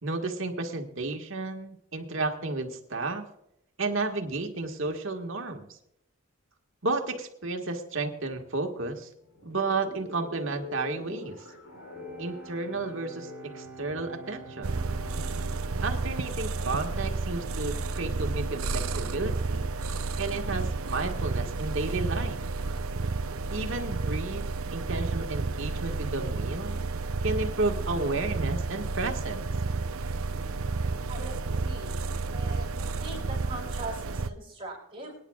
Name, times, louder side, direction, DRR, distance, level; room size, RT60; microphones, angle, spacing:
voice 1, 0.0-3.3 3.8-5.7 6.8-9.1 9.4-11.5 12.2-14.8 15.8-19.7 20.2-22.4 23.5-26.8 27.2-29.5, right 3 dB, 65° right, 3 dB, 1.8 m, -32 dB
sound 1, 9.2-17.9, left 2 dB, 75° left, 4.0 m, -46 dB
Bowed string instrument, 11.6-17.6, right 2 dB, 10° right, 4.0 m, -48 dB
sound 2, 14.6-34.3, right 3 dB, 80° right, 0.7 m, -31 dB
voice 2, 31.1-32.0 32.3-35.2, right 2 dB, 25° right, -8 dB, 5.8 m, -41 dB
24.5 x 10.0 x 2.4 m, 0.78 s
head